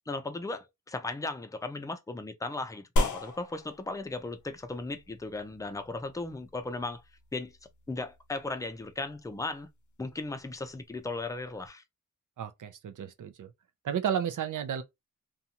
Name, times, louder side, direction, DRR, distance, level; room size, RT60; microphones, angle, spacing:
voice 1, 0.1-7.0 7.3-7.5 7.9-9.7 10.0-11.8, left 3 dB, 10° left, 0.4 m, -36 dB
sound 1, 3.0-11.7, left 1 dB, 65° left, 0.6 m, -37 dB
voice 2, 12.4-13.5 13.8-14.8, right 8 dB, 70° right, 0.5 m, -32 dB
2.6 x 2.3 x 2.8 m
wide cardioid pair, 115°, 32 cm